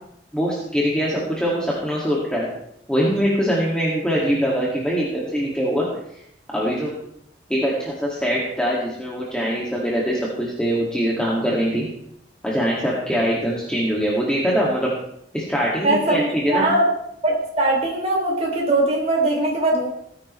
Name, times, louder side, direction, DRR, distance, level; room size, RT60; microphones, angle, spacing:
voice 1, 0.3-2.5 2.9-5.9 6.5-6.9 7.5-11.9 12.4-14.9 15.3-16.7, equal, 5° left, -5 dB, 2.2 m, -22 dB
voice 2, 15.8-16.9 17.2-19.9, right 2 dB, 35° right, -2 dB, 3.1 m, -20 dB
19.0 x 9.8 x 3.2 m, 0.74 s
head